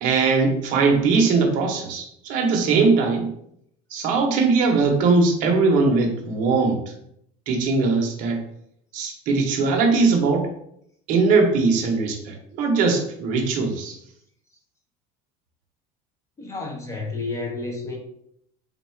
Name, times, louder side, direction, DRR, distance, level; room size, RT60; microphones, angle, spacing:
voice 1, 0.0-3.3 3.9-6.8 7.5-8.4 8.9-10.5 11.1-14.0, right 4 dB, 45° right, 3 dB, 0.8 m, -20 dB
voice 2, 16.4-18.0, left 3 dB, 15° left, 0 dB, 0.5 m, -31 dB
3.8 x 2.3 x 4.2 m, 0.72 s
cardioid pair, 180°, 18 cm